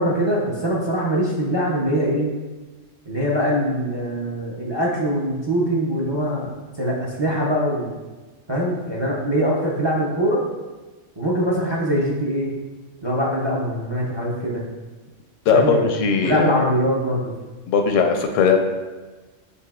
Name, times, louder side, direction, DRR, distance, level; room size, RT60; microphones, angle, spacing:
voice 1, 0.0-2.3 3.1-7.9 8.5-10.4 11.2-12.5 13.0-14.6 15.5-15.9 16.2-17.3, equal, 35° right, -4 dB, 0.4 m, -22 dB
voice 2, 15.5-16.5 17.7-18.6, left 5 dB, 85° left, 4 dB, 0.9 m, -18 dB
6.7 x 3.0 x 2.3 m, 1.2 s
omnidirectional pair, 1.3 m